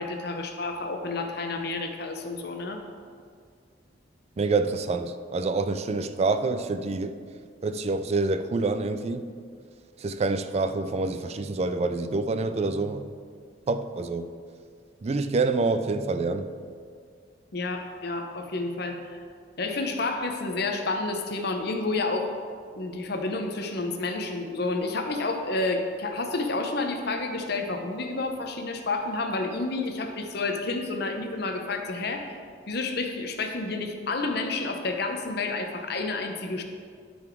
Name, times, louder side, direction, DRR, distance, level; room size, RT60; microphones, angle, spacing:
voice 1, 0.0-2.8 17.5-19.2 19.6-22.3 22.7-32.3 32.7-36.6, left 3 dB, 60° left, 4 dB, 0.8 m, -30 dB
voice 2, 4.4-7.2 7.6-9.3 10.0-13.1 13.7-14.3 15.0-16.5, right 3 dB, 35° right, 10 dB, 0.4 m, -27 dB
12.0 x 4.1 x 4.5 m, 2.1 s
head